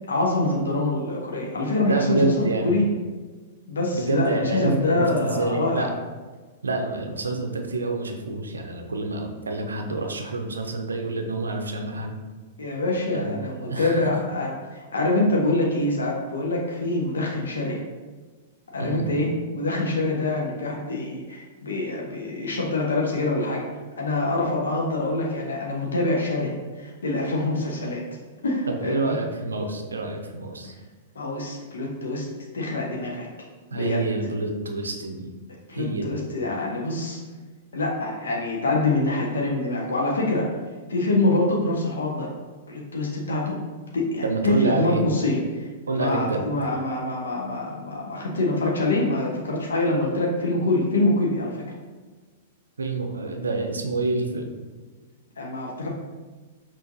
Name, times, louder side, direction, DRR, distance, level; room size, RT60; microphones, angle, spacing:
voice 1, 0.1-2.3 2.6-2.8 3.7-5.9 12.6-17.8 18.7-23.6 24.0-28.0 28.4-29.2 31.2-33.3 33.7-34.0 35.7-37.2 37.7-40.5 40.9-42.3 42.7-43.6 43.9-51.6 55.4-55.9, left 2 dB, 70° left, -2 dB, 0.6 m, -25 dB
voice 2, 1.8-2.9 3.9-5.9 6.6-12.2 13.1-14.1 18.8-19.0 28.7-30.7 33.7-35.3 35.7-36.2 44.2-45.0 45.9-46.5 52.8-54.5, right 3 dB, 75° right, 3 dB, 0.5 m, -27 dB
5.6 x 2.5 x 2.6 m, 1.4 s
figure-of-eight pair, 100°, 0 cm